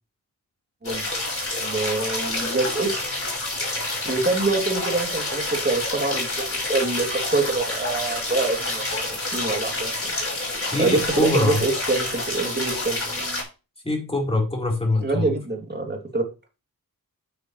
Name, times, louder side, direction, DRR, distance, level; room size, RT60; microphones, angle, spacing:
sound 1, 0.8-13.4, left 2 dB, 35° left, 5.9 m, -28 dB
voice 1, 1.6-3.2 4.0-10.1 10.8-13.0 15.0-16.2, right 3 dB, 25° right, 3 dB, 2.9 m, -25 dB
voice 2, 10.7-11.6 13.8-15.3, left 1 dB, 15° left, 0 dB, 4.1 m, -23 dB
9.4 x 9.1 x 3.2 m, 0.29 s
wide cardioid pair, 95°, 37 cm